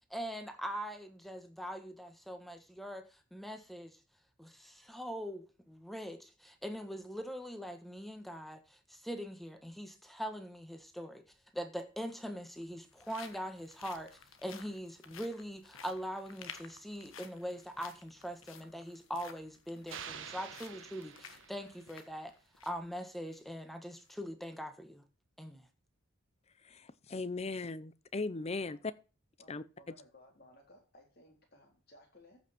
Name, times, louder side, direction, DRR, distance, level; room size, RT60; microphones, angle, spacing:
voice 1, 0.1-4.0 4.4-11.2 11.5-22.3 22.6-25.0 25.4-25.7, equal, ahead, 1.3 m, -42 dB
sound 1, 11.3-11.4 12.3-22.9 23.3-23.4 23.9-24.1, left 7 dB, 85° left, 1.3 m, -54 dB
sound 2, 19.9-22.1, right 7 dB, 70° right, 1.4 m, -48 dB
voice 2, 26.6-28.8 29.5-29.6, left 3 dB, 30° left, 0.6 m, -38 dB
voice 3, 29.4-32.4, left 1 dB, 50° left, 3.9 m, -60 dB
14.5 x 6.0 x 4.3 m
head